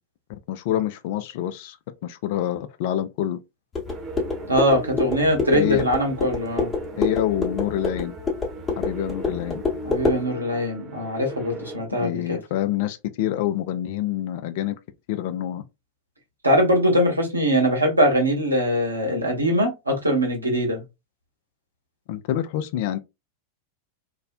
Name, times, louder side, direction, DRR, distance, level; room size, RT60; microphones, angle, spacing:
voice 1, 0.5-1.8 2.0-3.4 5.5-5.8 7.0-8.1 8.8-9.6 12.0-14.8 15.1-15.6 22.1-23.0, left 12 dB, 50° left, 0.3 m, -26 dB
sound 1, 3.7-10.2, left 3 dB, 20° left, 1.0 m, -27 dB
sound 2, 3.8-11.8, right 2 dB, 15° right, 0.9 m, -37 dB
voice 2, 4.5-6.7 9.8-12.4 16.4-20.8, equal, 80° right, 0.8 m, -22 dB
2.4 x 2.1 x 2.5 m
figure-of-eight pair, 90°, 0 cm